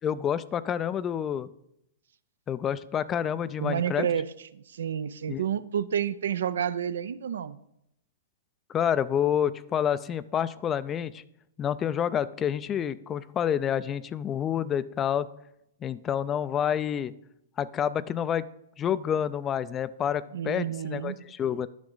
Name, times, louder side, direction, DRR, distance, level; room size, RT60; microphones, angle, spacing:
voice 1, 0.0-1.5 2.5-4.1 5.3-5.4 8.7-11.2 11.6-15.3 15.8-17.1 17.6-18.5 18.8-21.7, left 9 dB, 25° left, 16 dB, 0.3 m, -28 dB
voice 2, 3.6-4.2 4.5-7.6 20.3-21.2, right 9 dB, 75° right, 15 dB, 0.4 m, -30 dB
10.5 x 6.2 x 3.9 m, 0.79 s
hypercardioid pair, 130°, 0 cm